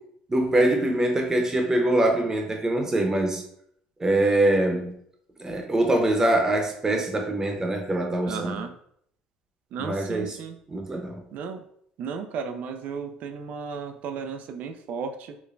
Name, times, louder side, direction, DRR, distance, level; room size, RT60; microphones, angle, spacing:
voice 1, 0.3-3.4 4.0-4.9 5.4-8.5 9.8-10.3 10.7-11.2, right 1 dB, 20° right, 3 dB, 0.8 m, -23 dB
voice 2, 8.2-8.7 9.7-10.6 11.3-11.6 12.0-15.4, right 6 dB, 65° right, 7 dB, 0.4 m, -34 dB
5.0 x 2.1 x 2.5 m, 0.67 s
supercardioid pair, 90°, 3 cm